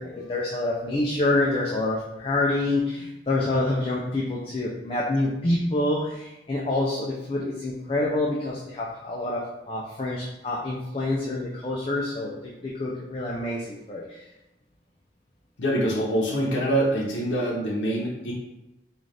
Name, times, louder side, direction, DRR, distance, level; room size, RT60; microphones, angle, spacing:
voice 1, 0.0-14.2, left 2 dB, 30° left, -4 dB, 0.4 m, -27 dB
voice 2, 15.6-18.3, right 1 dB, 80° left, -4 dB, 0.7 m, -25 dB
3.9 x 2.4 x 3.3 m, 0.97 s
head